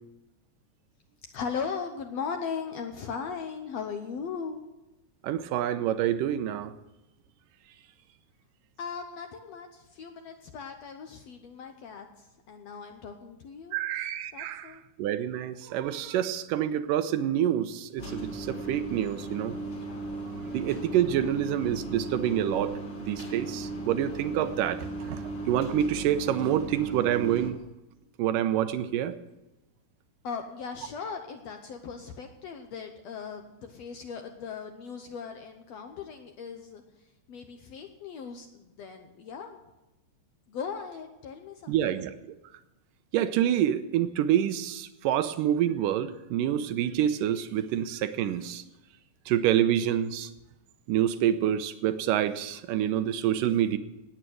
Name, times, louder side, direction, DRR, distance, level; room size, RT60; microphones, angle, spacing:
voice 1, 1.3-4.6 8.8-13.8 14.3-14.8 30.2-36.8 37.3-39.6 40.5-42.0, left 6 dB, 65° left, 5 dB, 1.7 m, -38 dB
voice 2, 5.2-6.7 13.7-19.6 20.5-27.6 28.2-29.2 41.7-42.1 43.1-48.6 49.3-50.3 50.9-53.8, right 11 dB, 85° right, 11 dB, 2.4 m, -27 dB
sound 1, 18.0-27.5, right 2 dB, 35° left, 2.5 m, -37 dB
18.0 x 9.0 x 6.3 m, 1.0 s
omnidirectional pair, 3.8 m